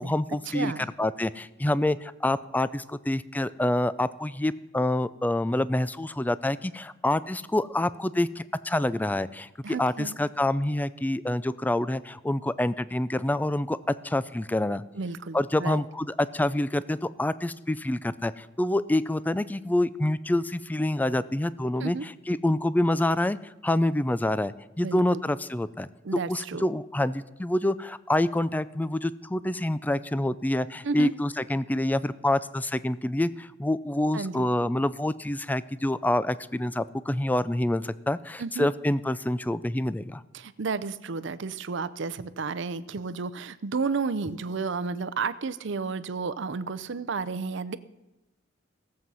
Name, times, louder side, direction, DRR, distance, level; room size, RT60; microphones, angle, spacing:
voice 1, 0.0-0.7 1.0-14.8 15.3-23.4 23.6-25.9 26.3-40.2, left 1 dB, 10° left, 16 dB, 0.3 m, -27 dB
voice 2, 9.6-10.1 14.9-15.8 21.8-22.1 24.8-25.2 26.0-26.6 30.8-31.1 34.1-34.5 38.4-38.7 40.3-47.8, right 4 dB, 65° right, 15 dB, 0.6 m, -32 dB
17.5 x 7.6 x 5.6 m, 1.0 s
head